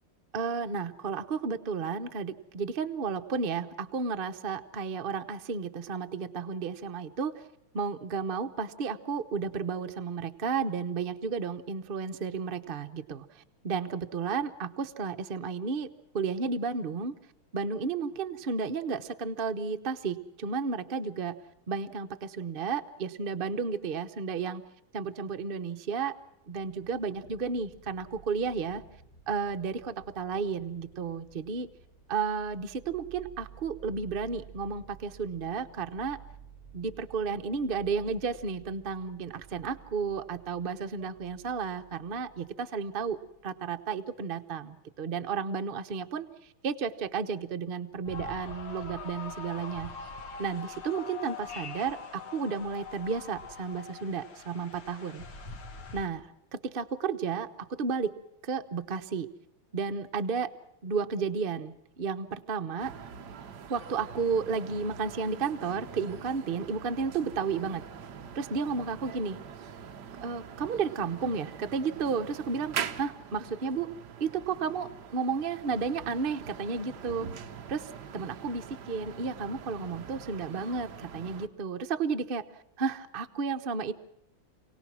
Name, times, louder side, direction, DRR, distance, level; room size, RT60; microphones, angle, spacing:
voice 1, 0.3-7.5 7.7-15.9 16.1-17.1 17.5-21.4 21.7-24.6 24.9-26.2 26.5-28.8 29.3-31.7 32.1-36.2 36.7-50.1 50.4-55.3 55.9-58.2 58.4-59.3 59.7-60.5 60.8-62.9 63.7-67.8 68.3-69.4 70.2-73.9 74.2-77.3 77.7-82.5 82.8-83.9, right 5 dB, 80° right, 7 dB, 0.5 m, -32 dB
sound 1, 26.3-43.6, right 7 dB, 15° left, 1.8 m, -54 dB
sound 2, 48.1-56.1, left 5 dB, 70° left, 2.6 m, -43 dB
sound 3, 62.8-81.5, right 7 dB, 55° right, 1.4 m, -43 dB
28.0 x 18.0 x 6.1 m, 0.80 s
omnidirectional pair, 2.4 m